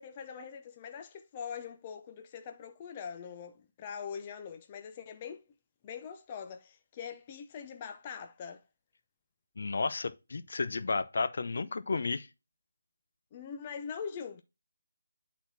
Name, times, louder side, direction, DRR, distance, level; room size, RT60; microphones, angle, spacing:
voice 1, 0.0-5.4 5.8-8.6 13.3-14.4, left 7 dB, 25° left, 0.6 m, -43 dB
voice 2, 9.6-12.3, left 4 dB, 60° left, 0.8 m, -32 dB
10.0 x 4.1 x 4.1 m
figure-of-eight pair, 165°, 0 cm